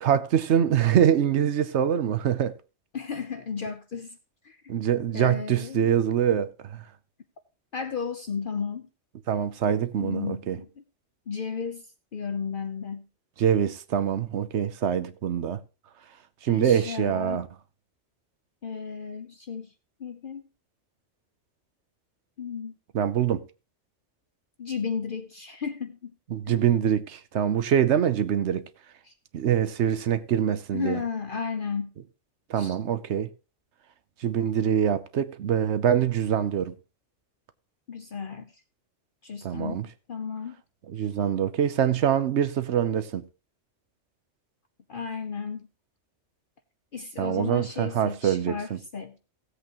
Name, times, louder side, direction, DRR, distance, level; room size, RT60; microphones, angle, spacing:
voice 1, 0.0-2.5 4.7-6.8 9.3-10.6 13.4-15.6 16.4-17.5 22.9-23.4 26.3-28.6 29.3-31.0 32.5-33.3 34.2-36.8 39.4-39.9 40.9-43.2 47.2-48.8, right 9 dB, 70° right, 1.0 m, -24 dB
voice 2, 2.9-4.2 4.4-4.6 5.1-5.9 7.7-8.9 10.0-10.7 11.3-11.9 12.1-13.1 16.5-17.5 18.6-19.7 20.0-20.4 22.4-22.7 24.6-26.1 26.5-26.6 29.1-29.2 30.7-31.9 32.5-32.8 37.9-38.5 39.2-40.6 44.9-45.7 46.9-49.2, left 6 dB, 50° left, 0.8 m, -34 dB
16.5 x 8.0 x 3.0 m
omnidirectional pair, 1.2 m